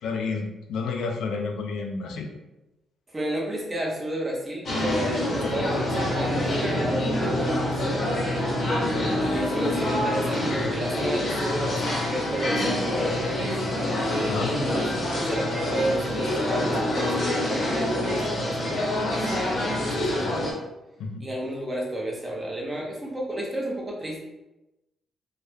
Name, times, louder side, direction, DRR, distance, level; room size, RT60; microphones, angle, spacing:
voice 1, 0.0-2.3 14.2-14.7 21.0-21.3, left 4 dB, 90° left, 2 dB, 0.4 m, -30 dB
voice 2, 3.1-8.0 9.2-13.6 14.5-20.5 21.2-24.2, right 1 dB, 20° right, -2 dB, 0.6 m, -32 dB
sound 1, 4.7-20.5, left 1 dB, 45° left, 0.7 m, -26 dB
Bowed string instrument, 4.7-9.5, right 3 dB, 75° right, 0.7 m, -43 dB
2.2 x 2.0 x 3.1 m, 0.98 s
cardioid pair, 125°, 0 cm